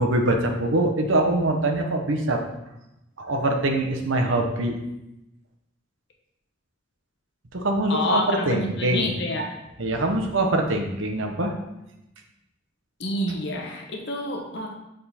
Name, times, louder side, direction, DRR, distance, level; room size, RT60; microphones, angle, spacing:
voice 1, 0.0-2.4 3.2-4.7 7.5-9.1 9.8-11.5, right 1 dB, 80° right, 3 dB, 0.9 m, -23 dB
voice 2, 7.9-9.5 13.0-14.8, left 1 dB, 55° left, 1 dB, 0.9 m, -28 dB
6.8 x 3.8 x 4.2 m, 0.89 s
head